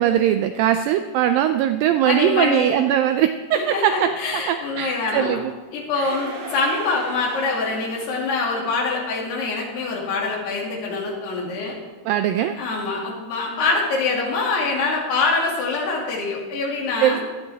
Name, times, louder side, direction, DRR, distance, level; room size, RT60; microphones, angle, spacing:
voice 1, 0.0-5.5 6.0-6.1 12.1-12.6 17.0-17.2, right 11 dB, 90° right, 8 dB, 2.0 m, -21 dB
voice 2, 2.0-2.8 3.5-5.4 5.7-11.8 12.6-17.2, left 3 dB, 85° left, -3 dB, 4.5 m, -24 dB
sound 1, 6.0-8.6, right 3 dB, 55° right, 3.0 m, -37 dB
16.5 x 12.0 x 3.5 m, 1.3 s
omnidirectional pair, 4.6 m